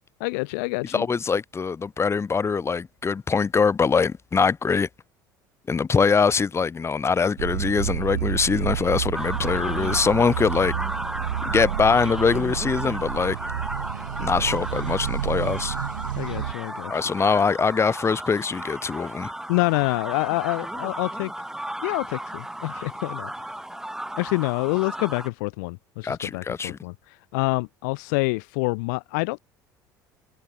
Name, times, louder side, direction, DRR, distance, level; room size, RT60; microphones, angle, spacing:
voice 1, 0.2-1.1 16.2-16.9 19.5-21.3 21.8-23.3 24.2-26.9 27.3-29.4, left 29 dB, 65° left, 1.1 m, -26 dB
voice 2, 0.9-4.9 5.7-10.7 11.4-13.4 14.2-15.8 16.9-19.3 26.0-26.8, left 5 dB, 25° left, 2.1 m, -23 dB
sound 1, 7.4-16.5, right 11 dB, 75° right, 1.3 m, -30 dB
sound 2, 9.1-25.3, right 1 dB, 5° right, 4.9 m, -34 dB
figure-of-eight pair, 65°, 11 cm